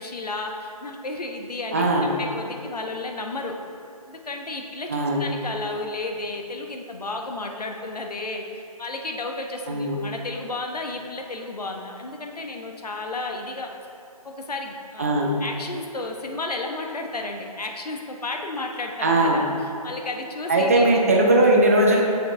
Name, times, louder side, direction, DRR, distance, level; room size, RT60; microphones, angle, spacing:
voice 1, 0.0-3.6 4.1-13.7 14.2-21.3, left 2 dB, 80° left, 3 dB, 1.0 m, -33 dB
voice 2, 1.7-2.1 4.9-5.3 9.7-10.0 15.0-15.3 19.0-19.5 20.5-22.0, right 1 dB, 25° right, -1 dB, 0.6 m, -19 dB
7.1 x 6.6 x 3.3 m, 2.5 s
figure-of-eight pair, 165°, 20 cm